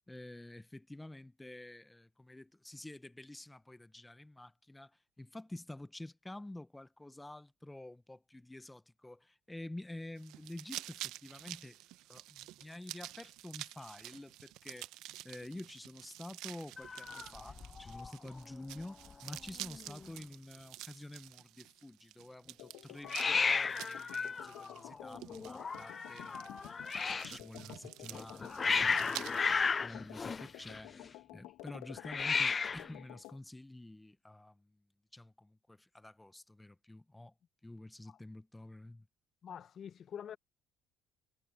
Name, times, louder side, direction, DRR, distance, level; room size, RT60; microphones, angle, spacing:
voice 1, 0.1-4.9 5.2-11.8 12.1-26.6 27.0-29.4 29.8-30.9 31.3-34.8 35.1-37.3 37.6-39.1, left 1 dB, 10° left, 1.2 m, -49 dB
sound 1, 10.2-29.5, right 16 dB, 75° right, 1.0 m, -49 dB
Hiss, 16.8-18.1 18.4-18.8 19.1-19.2 19.4-20.1 23.1-27.4 28.1-31.1 32.0-32.9, left 5 dB, 35° left, 0.4 m, -34 dB
sound 2, 22.6-33.4, left 17 dB, 80° left, 2.2 m, -52 dB
voice 2, 39.4-40.4, left 8 dB, 55° left, 1.1 m, -46 dB
supercardioid pair, 70°, 0 cm